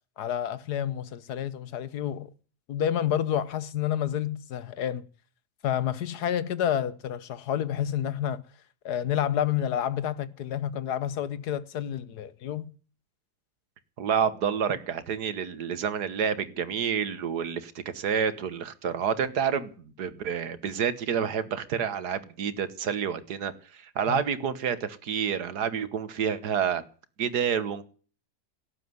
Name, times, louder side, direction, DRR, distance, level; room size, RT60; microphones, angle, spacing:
voice 1, 0.2-2.3 2.7-5.1 5.6-8.4 8.8-12.6 24.1-24.2, left 10 dB, 85° left, 1.5 m, -29 dB
voice 2, 14.0-26.8 27.2-27.8, right 7 dB, 85° right, 1.8 m, -29 dB
17.5 x 8.4 x 9.5 m
omnidirectional pair, 1.7 m